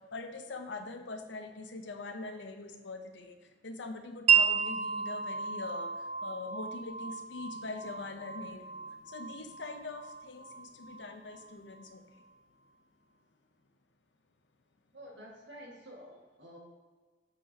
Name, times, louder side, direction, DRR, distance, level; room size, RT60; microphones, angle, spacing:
voice 1, 0.0-12.2, left 3 dB, 85° left, 7 dB, 0.7 m, -43 dB
Wind chime, 4.3-11.9, right 6 dB, 40° right, 0.3 m, -32 dB
voice 2, 14.9-16.6, equal, 80° right, -3 dB, 1.8 m, -50 dB
8.0 x 5.7 x 2.8 m, 1.4 s
head